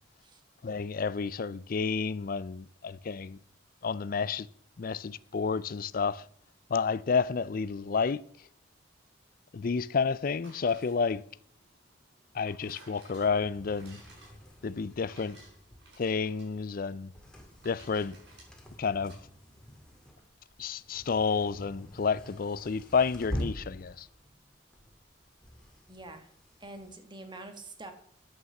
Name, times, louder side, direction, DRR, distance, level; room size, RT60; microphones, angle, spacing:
voice 1, 0.6-3.4 3.8-4.5 4.8-6.2 6.7-8.2 9.5-11.2 12.3-14.0 14.6-15.4 16.0-17.1 17.6-18.2 18.8-19.2 20.6-24.1, left 5 dB, 50° left, 0.4 m, -30 dB
sound 1, 10.3-19.2, right 2 dB, 65° right, 5.6 m, -58 dB
sound 2, 13.1-26.9, equal, 5° left, 2.3 m, -45 dB
voice 2, 25.9-26.3 26.6-27.9, right 2 dB, 25° right, 1.6 m, -45 dB
9.6 x 8.9 x 7.2 m
head